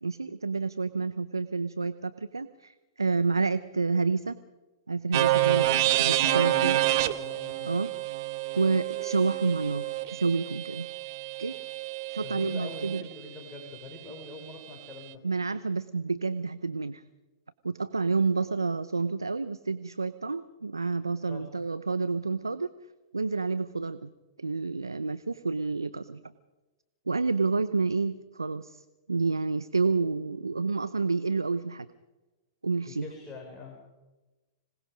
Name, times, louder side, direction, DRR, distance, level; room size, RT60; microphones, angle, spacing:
voice 1, 0.0-4.4 4.9-6.8 7.6-7.9 8.5-10.9 11.4-11.5 12.1-13.0 15.2-17.0 17.6-22.7 23.1-24.1 24.4-26.2 27.1-28.8 29.1-31.9 32.6-33.1, right 4 dB, 90° right, 13 dB, 0.7 m, -29 dB
sound 1, 5.1-13.0, right 15 dB, 50° right, 1.2 m, -28 dB
voice 2, 6.2-6.6 6.9-7.7 12.2-15.2 21.3-21.4 32.9-33.8, left 3 dB, 20° left, -1 dB, 5.5 m, -43 dB
26.0 x 19.0 x 5.2 m, 1.1 s
figure-of-eight pair, 110°, 2 cm